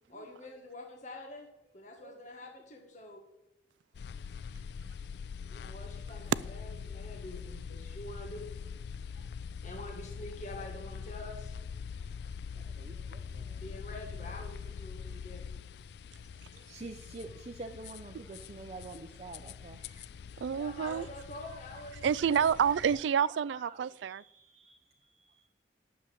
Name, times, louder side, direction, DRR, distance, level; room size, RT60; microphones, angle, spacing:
voice 1, 0.1-1.5 1.7-3.2 5.4-8.5 9.6-11.6 12.5-12.6 13.6-15.4 20.5-22.0 22.3-22.6, left 1 dB, 45° left, 1.6 m, -46 dB
sound 1, 3.9-23.0, left 6 dB, 65° left, 0.3 m, -44 dB
voice 2, 12.7-13.6 16.7-20.0 23.7-25.5, right 3 dB, 35° right, 0.7 m, -47 dB
voice 3, 20.4-21.1 22.0-24.2, right 7 dB, 85° right, 0.3 m, -28 dB
9.9 x 7.2 x 7.8 m
head